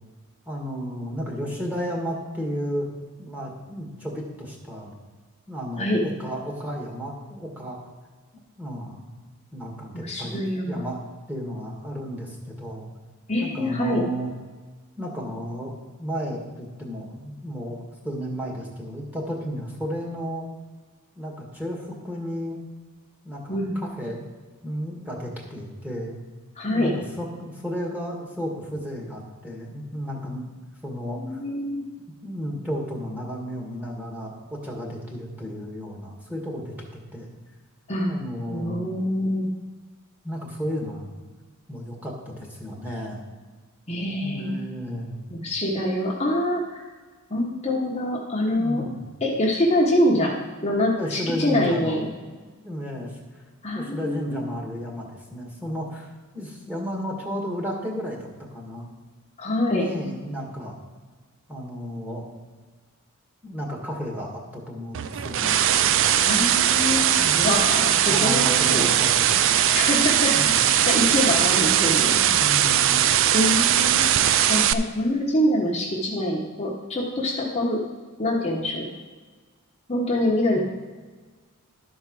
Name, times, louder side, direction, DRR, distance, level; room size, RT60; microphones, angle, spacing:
voice 1, 0.5-2.9 3.2-4.9 5.5-7.8 8.6-9.1 9.5-11.0 11.3-12.9 13.4-14.3 15.0-20.5 21.2-22.6 23.2-24.2 24.6-26.2 26.7-30.4 30.8-31.4 32.2-37.3 38.1-38.9 40.2-41.1 41.7-43.2 44.2-45.4 48.5-49.0 51.0-52.0 52.6-53.2 53.7-58.9 59.6-60.7 61.5-62.3 63.4-65.6 67.2-67.5 67.9-69.4 70.3-70.6 72.4-73.1, equal, 5° right, -2 dB, 1.9 m, -33 dB
voice 2, 9.9-10.8 13.3-14.0 23.5-23.8 26.6-26.9 31.1-31.9 37.9-38.1 38.5-39.5 43.9-44.5 45.3-46.8 47.3-48.8 49.2-50.3 50.6-52.1 53.6-54.4 59.4-59.9 66.2-68.9 69.7-72.3 73.3-77.8 78.2-78.8 79.9-80.6, left 1 dB, 30° left, -3 dB, 1.2 m, -25 dB
sound 1, 64.9-74.7, right 10 dB, 60° right, 0.4 m, -20 dB
12.5 x 4.6 x 6.1 m, 1.4 s
head